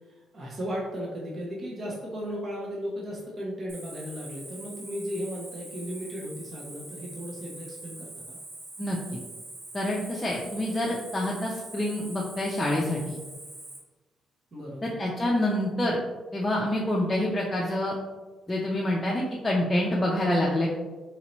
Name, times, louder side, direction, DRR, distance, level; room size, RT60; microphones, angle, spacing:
voice 1, 0.3-8.4 14.5-15.1, equal, 40° right, -4 dB, 0.8 m, -36 dB
Cricket, 3.7-13.8, right 2 dB, 65° right, 1.3 m, -43 dB
voice 2, 9.7-13.2 14.8-16.0 16.3-17.9 18.5-20.7, left 1 dB, 20° left, -4 dB, 0.6 m, -27 dB
4.3 x 2.7 x 3.0 m, 1.2 s
cardioid pair, 90°, 0 cm